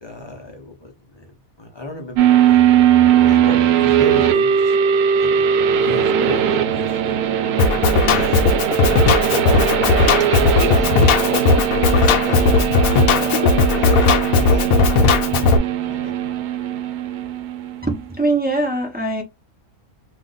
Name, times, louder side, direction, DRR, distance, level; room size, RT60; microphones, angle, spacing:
voice 1, 0.0-2.7 3.2-4.8 5.2-5.5 5.8-7.2 8.1-9.8 10.4-11.4 11.9-16.2, left 2 dB, 30° left, 0.5 m, -33 dB
sound 1, 2.2-17.9, right 9 dB, 85° right, 1.1 m, -19 dB
Drum kit, 7.6-15.6, left 4 dB, 75° left, 1.0 m, -16 dB
voice 2, 17.8-19.2, right 2 dB, 10° right, 0.7 m, -22 dB
2.5 x 2.5 x 3.8 m
omnidirectional pair, 1.5 m